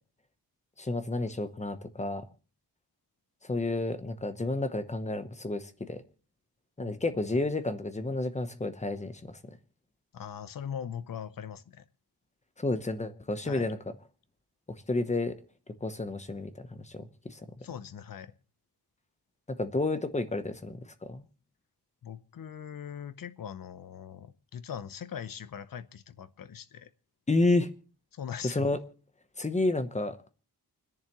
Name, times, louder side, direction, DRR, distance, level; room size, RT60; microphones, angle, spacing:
voice 1, 0.8-2.3 3.4-6.0 6.8-9.3 12.6-13.8 14.9-15.4 15.8-17.4 19.6-20.8 21.1-21.2 27.3-27.7 28.4-28.8 29.4-30.3, left 2 dB, 15° left, 0.9 m, -30 dB
voice 2, 6.8-7.2 10.1-11.8 13.4-13.7 17.6-18.3 22.0-26.9 28.1-28.8, left 8 dB, 55° left, 0.8 m, -41 dB
29.0 x 10.5 x 3.0 m
wide cardioid pair, 180°, 40 cm